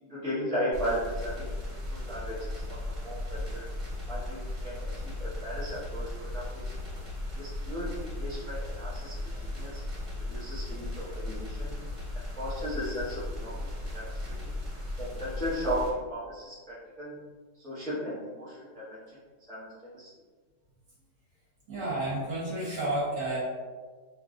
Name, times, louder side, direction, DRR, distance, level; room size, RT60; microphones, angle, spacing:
voice 1, 0.0-2.4 2.7-2.8 3.0-3.6 4.1-6.7 7.4-9.8 10.3-11.7 12.4-13.6 13.9-14.5 15.0-17.2 17.6-19.0 19.5-20.1, equal, 5° left, -11 dB, 0.4 m, -36 dB
sound 1, 0.7-15.9, left 1 dB, 20° right, 1.4 m, -36 dB
voice 2, 21.7-23.4, right 1 dB, 50° right, -8 dB, 1.3 m, -31 dB
3.0 x 2.5 x 2.5 m, 1.5 s
omnidirectional pair, 2.0 m